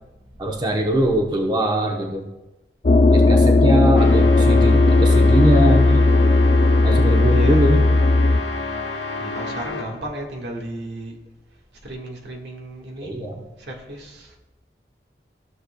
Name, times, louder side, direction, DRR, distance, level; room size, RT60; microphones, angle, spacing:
voice 1, 0.4-2.3 3.1-6.1 6.8-7.8 13.0-13.4, right 1 dB, 25° right, 1 dB, 0.8 m, -22 dB
sound 1, 2.8-8.4, left 2 dB, 40° left, 0.5 m, -15 dB
sound 2, 4.0-10.0, left 3 dB, 85° left, 0.8 m, -30 dB
voice 2, 7.2-7.7 9.2-11.2 11.8-13.1 13.6-14.3, right 1 dB, 80° right, 0 dB, 1.5 m, -34 dB
14.5 x 6.6 x 2.2 m, 1.0 s
head